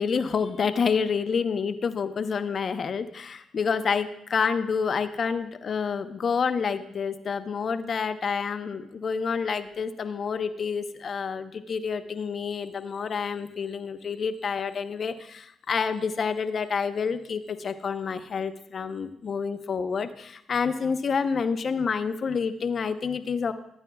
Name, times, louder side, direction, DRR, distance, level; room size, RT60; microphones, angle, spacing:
voice 1, 0.0-23.5, left 5 dB, 55° left, 9 dB, 0.7 m, -28 dB
15.0 x 9.0 x 2.3 m, 0.78 s
supercardioid pair, 60°, 0 cm